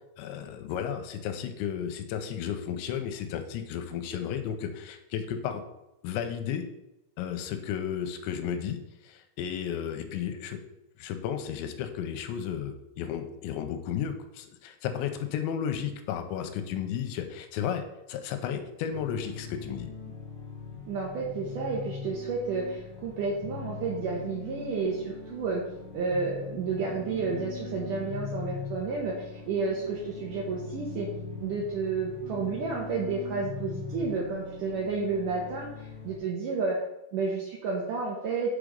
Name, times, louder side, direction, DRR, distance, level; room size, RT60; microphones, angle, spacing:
voice 1, 0.2-5.6 6.0-6.7 7.2-10.6 11.0-17.8 18.1-19.9, left 8 dB, 85° left, 7 dB, 3.0 m, -33 dB
sound 1, 18.9-36.2, left 5 dB, 55° left, 1.9 m, -41 dB
voice 2, 20.8-25.6 25.9-31.1 31.4-36.8 37.1-38.6, right 4 dB, 80° right, -3 dB, 1.9 m, -31 dB
6.5 x 5.0 x 5.1 m, 0.90 s
omnidirectional pair, 5.1 m